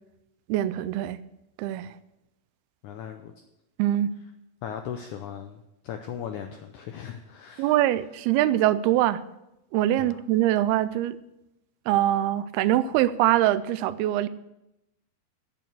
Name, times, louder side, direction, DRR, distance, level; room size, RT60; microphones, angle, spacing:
voice 1, 0.5-1.2 1.6-1.9 3.8-4.1 7.6-9.2 9.7-11.2 11.9-14.3, right 13 dB, 85° right, 15 dB, 2.5 m, -23 dB
voice 2, 2.8-3.3 4.6-7.7 10.0-10.2, left 8 dB, 80° left, 6 dB, 1.7 m, -38 dB
9.2 x 8.7 x 6.7 m, 0.88 s
omnidirectional pair, 4.4 m